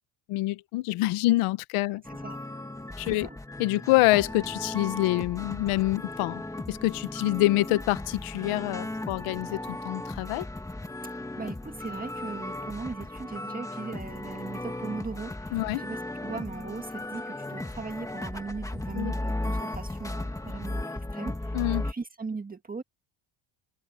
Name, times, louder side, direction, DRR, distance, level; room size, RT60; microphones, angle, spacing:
voice 1, 0.3-2.0 3.0-3.3 3.6-6.4 6.7-10.5 15.5-15.8 19.0-19.1 21.5-21.9, left 18 dB, 85° left, 1.2 m, -26 dB
sound 1, 2.0-21.9, left 1 dB, 5° left, 1.8 m, -36 dB
voice 2, 2.0-2.4 3.0-3.4 11.4-21.6 21.8-22.8, right 4 dB, 15° right, 1.8 m, -39 dB
cardioid pair, 125°, 49 cm